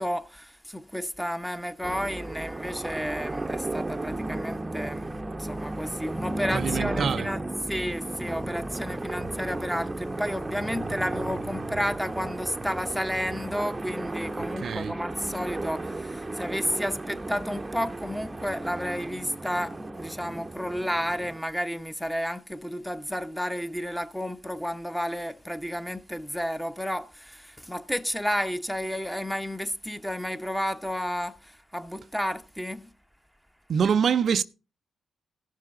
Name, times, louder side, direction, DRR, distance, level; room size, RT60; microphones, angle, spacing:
voice 1, 0.0-5.1 5.4-32.9, equal, 5° left, 1.0 m, -32 dB
sound 1, 1.8-21.4, right 2 dB, 25° right, 0.8 m, -34 dB
voice 2, 6.5-7.3 14.4-14.9 33.7-34.4, right 7 dB, 60° right, 0.5 m, -25 dB
16.5 x 6.7 x 3.7 m
supercardioid pair, 50°, 0 cm